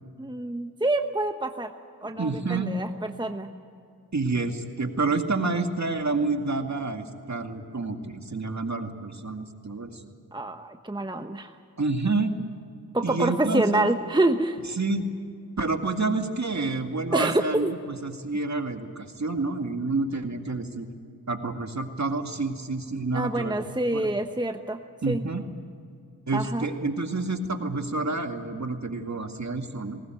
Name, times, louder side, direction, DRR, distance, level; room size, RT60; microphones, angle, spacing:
voice 1, 0.2-1.7 2.0-3.5 10.3-11.5 12.9-14.6 17.1-17.7 23.1-25.2 26.3-26.7, right 2 dB, 10° right, 6 dB, 1.1 m, -27 dB
voice 2, 2.2-2.7 4.1-10.0 11.8-12.3 13.0-13.9 14.8-15.1 15.6-20.9 21.3-23.5 23.9-24.1 25.0-25.4 26.3-30.0, right 3 dB, 45° right, 5 dB, 2.2 m, -28 dB
19.5 x 19.0 x 9.1 m, 2.3 s
cardioid pair, 50°, 39 cm